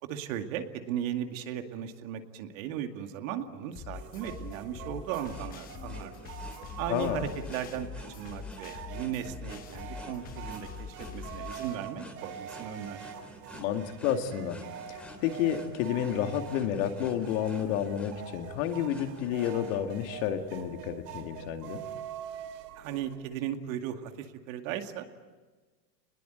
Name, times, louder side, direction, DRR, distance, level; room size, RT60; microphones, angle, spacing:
voice 1, 0.0-6.3 6.8-13.1 22.8-25.0, right 10 dB, 55° right, 6 dB, 2.4 m, -37 dB
sound 1, 3.8-11.8, left 7 dB, 20° left, 0.8 m, -44 dB
sound 2, 3.9-23.2, right 8 dB, 70° right, 3.3 m, -45 dB
sound 3, 4.1-19.8, equal, ahead, 3.3 m, -50 dB
voice 2, 6.9-7.3 13.5-14.6 14.9-21.8, left 9 dB, 55° left, 5 dB, 2.4 m, -30 dB
27.5 x 21.0 x 9.2 m, 1.3 s
supercardioid pair, 160°, 49 cm